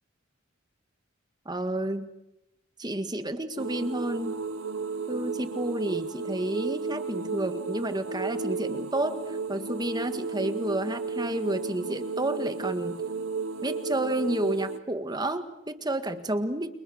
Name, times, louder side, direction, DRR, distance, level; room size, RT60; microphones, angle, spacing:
voice 1, 1.5-2.1 2.8-4.4 5.1-13.0 13.6-16.7, right 1 dB, 20° right, 9 dB, 1.7 m, -30 dB
sound 1, 3.6-14.8, right 4 dB, 90° right, 1.3 m, -33 dB
30.0 x 28.5 x 6.5 m, 0.91 s
head